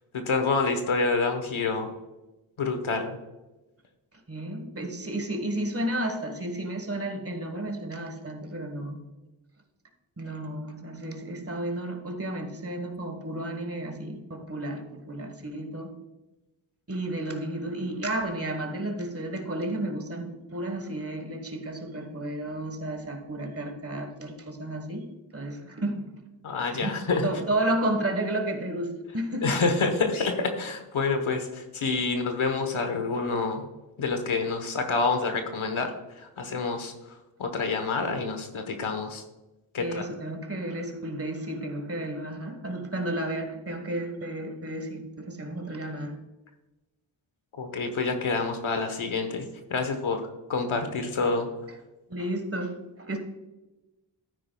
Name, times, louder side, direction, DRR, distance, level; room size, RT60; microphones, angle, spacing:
voice 1, 0.1-1.9 2.6-3.2 26.4-27.3 29.4-33.6 34.0-35.9 36.2-36.9 37.4-39.2 39.7-40.1 47.6-51.5, left 4 dB, 85° left, 6 dB, 1.2 m, -27 dB
voice 2, 4.3-9.0 10.2-15.9 16.9-25.1 25.3-26.2 26.7-26.9 27.2-29.6 39.8-46.2 52.1-53.2, right 1 dB, 30° right, 5 dB, 1.4 m, -32 dB
12.5 x 9.8 x 2.3 m, 1.1 s
wide cardioid pair, 60°, 47 cm